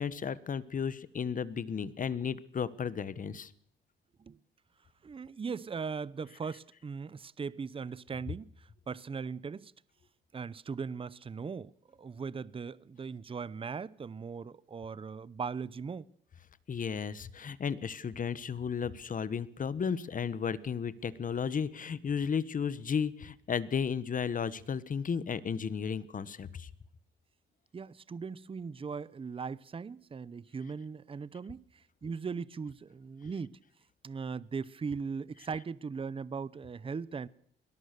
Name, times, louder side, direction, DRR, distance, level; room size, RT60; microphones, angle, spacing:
voice 1, 0.0-3.5 16.7-26.7, left 6 dB, 45° left, 1.3 m, -34 dB
voice 2, 5.0-9.7 10.3-16.1 27.7-33.6 34.0-37.3, right 5 dB, 25° right, 0.7 m, -39 dB
21.0 x 18.0 x 6.8 m
cardioid pair, 90°, 20 cm